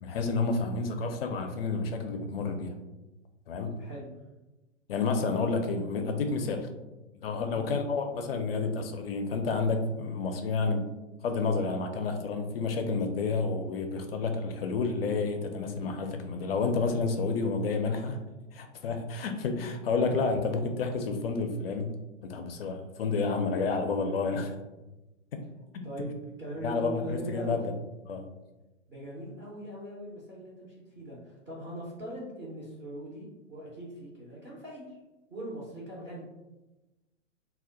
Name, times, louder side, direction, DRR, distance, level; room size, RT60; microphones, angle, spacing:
voice 1, 0.0-2.7 3.5-3.8 4.9-6.7 7.1-10.9 11.2-18.2 18.5-21.9 22.2-24.5 25.3-25.5 25.7-25.8 26.6-27.7 28.1-28.2, left 4 dB, 50° left, 5 dB, 0.4 m, -30 dB
voice 2, 25.8-27.6 28.9-35.0 35.3-36.3, right 1 dB, 10° right, -6 dB, 0.4 m, -41 dB
2.1 x 2.1 x 3.7 m, 1.1 s
figure-of-eight pair, 110°, 37 cm